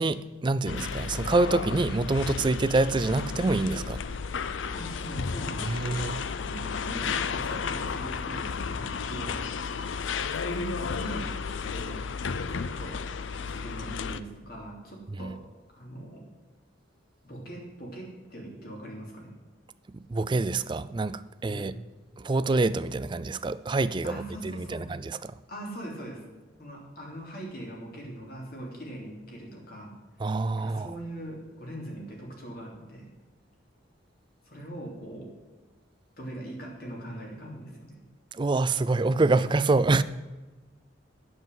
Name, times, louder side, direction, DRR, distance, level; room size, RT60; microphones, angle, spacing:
voice 1, 0.0-4.0 5.7-6.2 15.2-15.3 19.9-21.8 22.2-25.3 30.2-30.9 38.3-40.0, right 3 dB, 25° right, 0.4 m, -26 dB
sound 1, 0.7-14.2, left 5 dB, 85° left, 0.5 m, -33 dB
voice 2, 4.7-5.8 6.4-8.5 8.8-9.3 10.3-11.3 11.7-12.0 12.5-13.0 13.5-15.3 15.7-16.2 17.2-19.3 21.5-21.7 24.0-24.9 25.5-26.2 26.6-29.9 30.6-33.1 34.4-35.3 36.2-38.0, right 1 dB, 55° left, 3.3 m, -41 dB
9.2 x 7.9 x 7.8 m
head